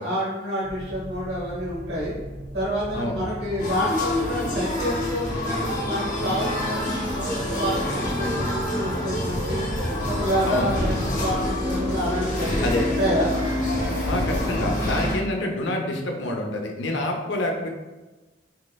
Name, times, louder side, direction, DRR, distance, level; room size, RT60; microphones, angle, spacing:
voice 1, 0.0-2.1 2.5-9.7 10.0-13.3, equal, 65° right, -6 dB, 1.0 m, -28 dB
sound 1, 0.6-12.9, right 1 dB, 85° right, 1.4 m, -39 dB
sound 2, 1.9-15.4, left 1 dB, 15° right, 0.5 m, -35 dB
sound 3, 3.6-15.1, left 1 dB, 45° left, 0.8 m, -27 dB
voice 2, 14.0-17.7, left 1 dB, 75° left, 2 dB, 0.5 m, -27 dB
3.6 x 3.1 x 2.2 m, 1.2 s
head